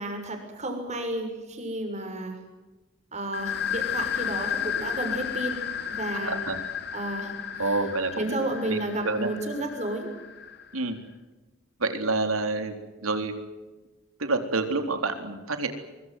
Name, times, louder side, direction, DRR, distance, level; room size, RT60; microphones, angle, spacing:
voice 1, 0.0-2.4 3.1-5.6 5.9-6.4 6.9-7.8 8.1-10.1, right 1 dB, 35° right, 4 dB, 6.5 m, -32 dB
sound 1, 3.3-10.8, left 8 dB, 50° left, 2.2 m, -33 dB
voice 2, 6.2-6.6 7.6-8.4 8.6-8.8 9.0-9.3 10.7-11.0 11.8-12.7 13.0-13.3 14.2-15.7, right 3 dB, 85° right, 7 dB, 3.8 m, -27 dB
24.5 x 24.0 x 7.8 m, 1.2 s
head